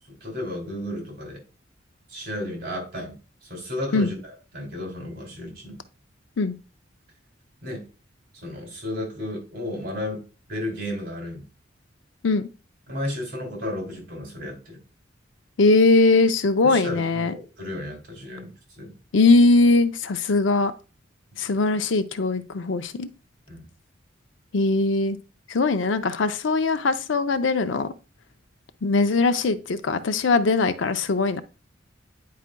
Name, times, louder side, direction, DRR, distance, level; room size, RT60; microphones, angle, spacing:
voice 1, 0.2-1.4 2.1-3.2 3.5-4.1 4.5-5.8 7.6-7.9 8.4-11.4 12.9-14.8 16.6-18.9 23.5-23.7, left 1 dB, 55° right, 0 dB, 3.1 m, -33 dB
voice 2, 15.6-17.3 19.1-20.7 21.4-23.1 24.5-25.2 25.5-27.9 28.8-31.4, left 3 dB, 75° left, 11 dB, 0.5 m, -20 dB
9.3 x 4.8 x 2.2 m, 0.33 s
head